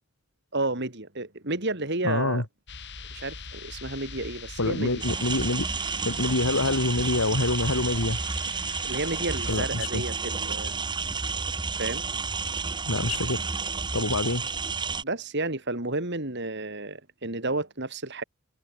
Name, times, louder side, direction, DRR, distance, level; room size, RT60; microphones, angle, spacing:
voice 1, 0.5-2.5 3.1-5.0 8.8-10.8 11.8-12.0 15.0-18.2, right 2 dB, 50° right, 3.5 m, -31 dB
voice 2, 2.0-2.4 4.6-5.7 6.0-8.2 9.5-10.0 12.9-13.5 13.9-14.5, left 2 dB, 75° left, 2.5 m, -26 dB
sound 1, 2.7-9.5, left 4 dB, 50° left, 6.3 m, -42 dB
sound 2, 5.0-15.0, right 4 dB, 20° right, 1.4 m, -31 dB
head